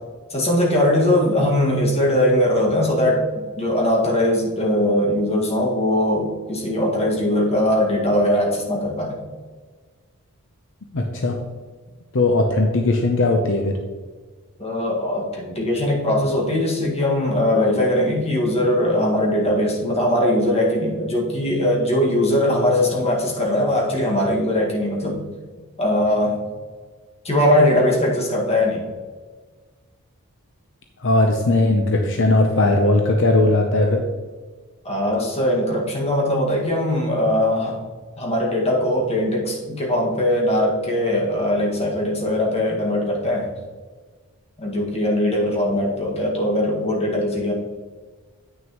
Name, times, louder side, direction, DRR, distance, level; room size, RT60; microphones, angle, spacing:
voice 1, 0.3-9.2 14.6-25.2 25.8-26.4 27.2-28.8 34.8-37.8 38.2-43.5 44.6-47.5, left 1 dB, 30° left, -2 dB, 1.7 m, -20 dB
voice 2, 10.9-11.4 12.1-13.7 31.0-34.0, left 2 dB, 55° left, 3 dB, 0.7 m, -18 dB
9.1 x 6.3 x 3.0 m, 1.4 s
head